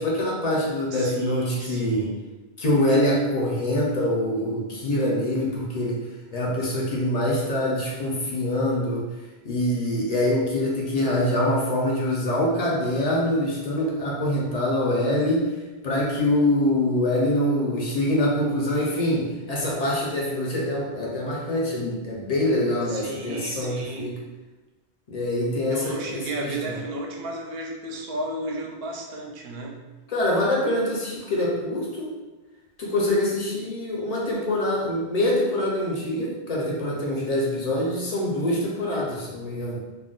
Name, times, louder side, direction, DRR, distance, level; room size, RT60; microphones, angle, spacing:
voice 1, 0.0-2.1 2.6-6.0 6.3-9.1 9.4-15.5 15.8-24.1 25.1-26.7 30.1-32.2 32.8-39.8, left 1 dB, 50° left, -3 dB, 0.5 m, -24 dB
voice 2, 0.9-2.2 22.9-24.1 25.7-29.8, right 2 dB, 70° right, 0 dB, 0.7 m, -33 dB
2.3 x 2.1 x 3.7 m, 1.2 s
omnidirectional pair, 1.1 m